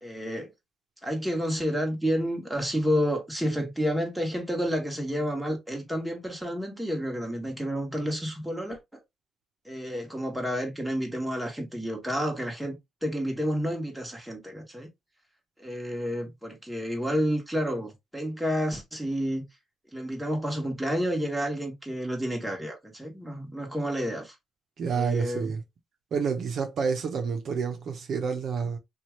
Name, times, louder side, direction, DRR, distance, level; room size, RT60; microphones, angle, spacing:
voice 1, 0.0-0.5 1.0-9.0 9.6-14.9 15.6-19.5 19.9-24.3 24.9-25.5, equal, ahead, 1.3 m, -30 dB
voice 2, 24.8-25.6 26.1-28.8, right 6 dB, 60° right, 0.7 m, -29 dB
2.8 x 2.4 x 3.0 m
cardioid pair, 90°, 0 cm